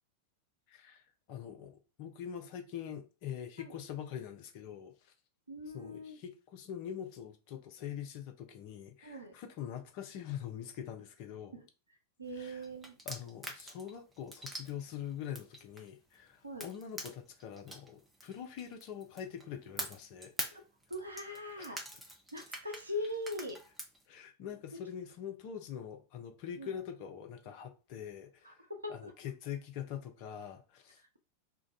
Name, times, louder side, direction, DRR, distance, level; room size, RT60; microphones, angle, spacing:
voice 1, 0.7-5.1 5.7-11.6 12.3-12.7 13.1-20.6 21.6-21.8 24.1-28.6 28.9-31.2, left 9 dB, 45° left, 0.6 m, -44 dB
voice 2, 5.5-6.2 9.0-9.3 11.5-11.7 12.2-13.0 16.4-16.7 20.5-20.6 20.9-21.8 22.3-23.6 26.6-26.8 28.4-29.1, left 1 dB, 80° right, 0.6 m, -41 dB
sound 1, 12.4-16.1 16.6-19.4 19.8-24.0, right 1 dB, 5° right, 0.6 m, -44 dB
2.5 x 2.2 x 3.9 m
figure-of-eight pair, 90°, 0 cm